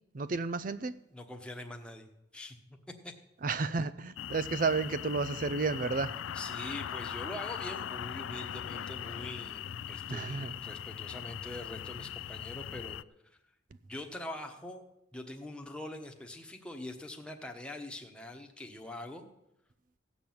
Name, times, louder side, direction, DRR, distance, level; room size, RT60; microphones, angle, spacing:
voice 1, 0.1-0.9 3.4-6.1 10.1-10.5, right 4 dB, 40° right, 13 dB, 0.4 m, -32 dB
voice 2, 1.1-2.1 2.3-3.1 6.3-13.0 13.2-13.4 13.9-14.8 15.1-19.3, left 1 dB, 5° left, 3 dB, 1.1 m, -44 dB
sound 1, 4.2-13.0, left 9 dB, 80° left, 0.4 m, -40 dB
16.0 x 6.1 x 8.7 m, 0.86 s
head